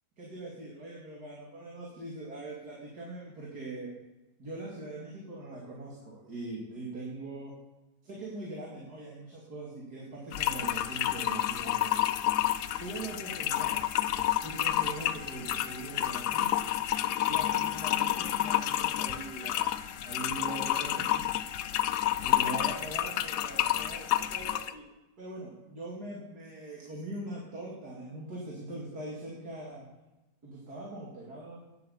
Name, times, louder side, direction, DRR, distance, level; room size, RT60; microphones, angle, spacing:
voice 1, 0.2-3.9 4.4-7.5 8.0-11.9 12.8-13.8 14.1-16.5 17.2-19.7 20.0-21.5 22.2-24.8 25.2-29.8 30.4-31.6, right 2 dB, 70° right, -3 dB, 3.1 m, -42 dB
sound 1, 10.3-24.7, left 12 dB, 80° left, 1.3 m, -30 dB
11.0 x 10.5 x 7.3 m, 1.1 s
omnidirectional pair, 1.7 m